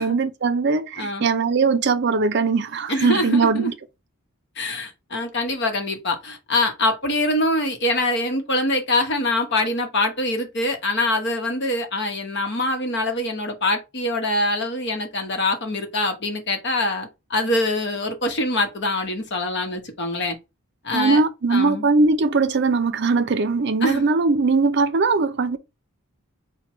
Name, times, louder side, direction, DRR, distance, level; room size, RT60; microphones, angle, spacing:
voice 1, 0.0-3.7 20.9-25.6, right 4 dB, 50° right, 0.5 m, -20 dB
voice 2, 1.0-1.3 2.9-3.7 4.6-20.4 20.8-21.2 21.5-21.9 23.8-24.1, left 2 dB, 50° left, 1.0 m, -24 dB
4.4 x 2.2 x 4.4 m
head